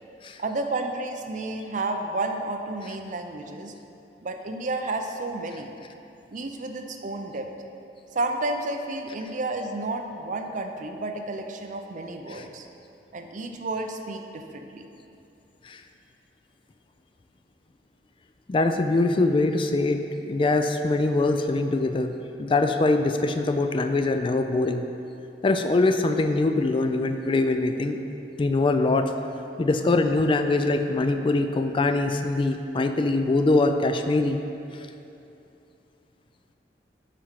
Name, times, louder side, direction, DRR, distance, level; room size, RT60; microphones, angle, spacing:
voice 1, 0.4-3.7 4.2-5.7 6.3-7.5 8.1-12.7 13.1-14.9, right 2 dB, 45° right, 5 dB, 0.6 m, -31 dB
voice 2, 18.5-24.8 25.4-28.0 28.4-29.1 29.6-34.4, left 2 dB, 30° left, 7 dB, 0.3 m, -23 dB
7.4 x 5.1 x 5.7 m, 2.8 s
head